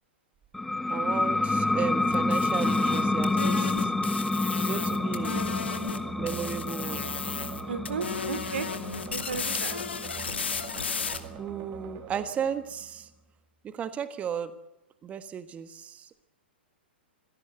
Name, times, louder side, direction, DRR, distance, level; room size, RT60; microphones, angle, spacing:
sound 1, 0.5-11.8, left 2 dB, 5° left, 0.8 m, -29 dB
voice 1, 0.9-3.9 4.6-5.5 6.2-7.1 11.4-13.1 13.6-14.5 15.0-16.1, right 8 dB, 25° right, 11 dB, 1.4 m, -34 dB
sound 2, 2.1-6.0 6.3-7.6 7.9-11.2, left 6 dB, 85° left, 2.5 m, -34 dB
sound 3, 4.7-13.4, right 8 dB, 40° right, 2.0 m, -45 dB
voice 2, 7.7-8.7 9.1-9.8, right 5 dB, 75° right, 13 dB, 2.7 m, -34 dB
25.5 x 17.5 x 8.0 m, 0.93 s
hypercardioid pair, 110°, 6 cm